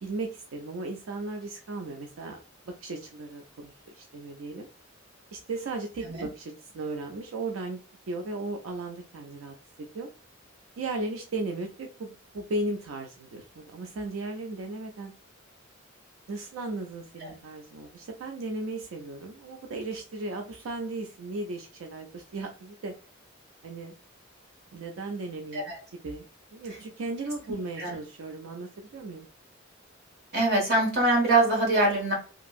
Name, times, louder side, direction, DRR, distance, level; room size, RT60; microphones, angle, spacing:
voice 1, 0.0-2.4 2.8-4.7 5.3-7.8 8.1-10.1 10.8-15.1 16.3-22.9 23.6-23.9 24.7-26.3 26.5-29.3, right 2 dB, 90° right, 3 dB, 0.4 m, -36 dB
voice 2, 30.3-32.1, right 2 dB, 55° right, -1 dB, 1.4 m, -23 dB
2.9 x 2.5 x 2.4 m, 0.38 s
head